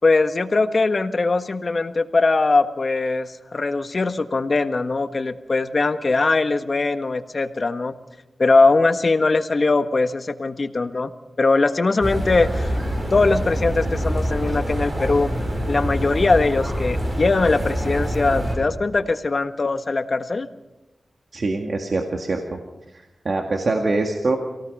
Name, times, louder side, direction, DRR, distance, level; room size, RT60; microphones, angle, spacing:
voice 1, 0.0-7.9 8.4-11.1 11.4-12.8 13.1-15.3 15.7-20.5, left 3 dB, 55° left, 9 dB, 1.5 m, -21 dB
sound 1, 12.0-18.5, equal, 40° right, 6.8 m, -25 dB
voice 2, 21.3-22.6 22.9-24.4, right 3 dB, 65° right, 2 dB, 2.1 m, -24 dB
27.0 x 18.0 x 5.5 m, 0.98 s
cardioid pair, 50°, 0 cm